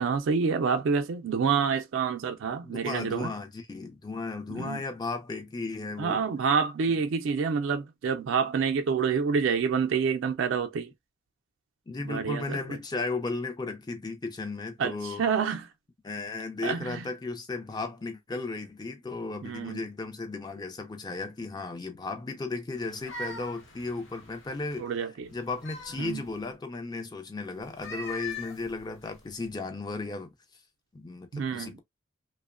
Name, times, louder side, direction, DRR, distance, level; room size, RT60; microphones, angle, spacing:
voice 1, 0.0-3.3 4.5-4.8 6.0-10.9 12.0-12.8 14.8-15.7 16.6-17.1 19.4-19.9 24.8-25.3 26.0-26.2 31.3-31.8, right 6 dB, 85° right, 0.4 m, -28 dB
voice 2, 2.6-6.2 11.9-15.2 16.0-24.9 25.3-30.3 30.9-31.8, left 3 dB, 20° left, 0.4 m, -35 dB
sound 1, 22.8-24.8 25.3-26.5 27.6-29.5, left 2 dB, 90° left, 1.0 m, -42 dB
2.9 x 2.1 x 2.3 m
head